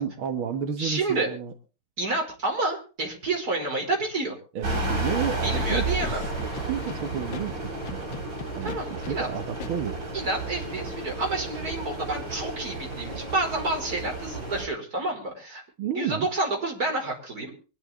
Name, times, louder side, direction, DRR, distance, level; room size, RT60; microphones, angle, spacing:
voice 1, 0.0-1.5 4.6-8.2 8.6-10.0 15.8-16.3, right 8 dB, 85° right, 6 dB, 2.2 m, -32 dB
voice 2, 0.8-1.3 2.0-4.4 5.3-6.2 8.6-9.3 10.1-15.6 15.9-17.5, right 2 dB, 45° right, 1 dB, 5.4 m, -29 dB
sound 1, 4.6-14.7, right 2 dB, 65° right, 6.2 m, -32 dB
Scratching (performance technique), 5.7-7.0 7.3-7.4 7.8-9.1 9.6-9.7, left 11 dB, 70° left, 1.7 m, -39 dB
23.5 x 11.5 x 3.7 m, 0.35 s
omnidirectional pair, 2.2 m